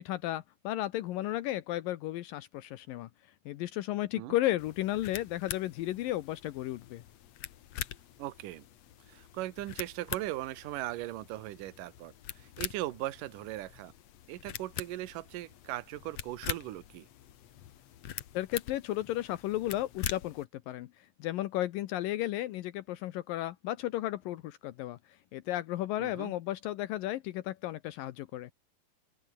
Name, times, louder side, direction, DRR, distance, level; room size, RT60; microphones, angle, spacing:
voice 1, 0.0-3.1 3.5-7.0 18.3-20.9 21.2-25.0 25.3-28.5, left 15 dB, 75° left, 2.5 m, -34 dB
sound 1, 4.6-20.5, left 11 dB, 60° left, 2.0 m, -44 dB
voice 2, 8.2-8.6 9.1-13.9 14.3-17.1 26.0-26.3, right 16 dB, 70° right, 2.6 m, -39 dB
open air
omnidirectional pair, 4.1 m